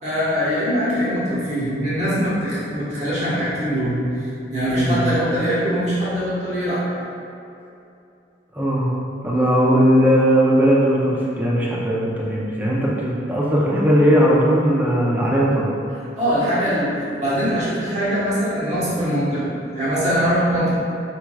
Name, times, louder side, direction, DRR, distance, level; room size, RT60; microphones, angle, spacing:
voice 1, 0.0-6.9 16.2-20.7, equal, 40° right, -9 dB, 1.3 m, -22 dB
voice 2, 4.7-5.1 8.5-8.9 9.2-15.7, equal, 10° right, -5 dB, 0.6 m, -18 dB
4.6 x 4.4 x 2.3 m, 2.6 s
head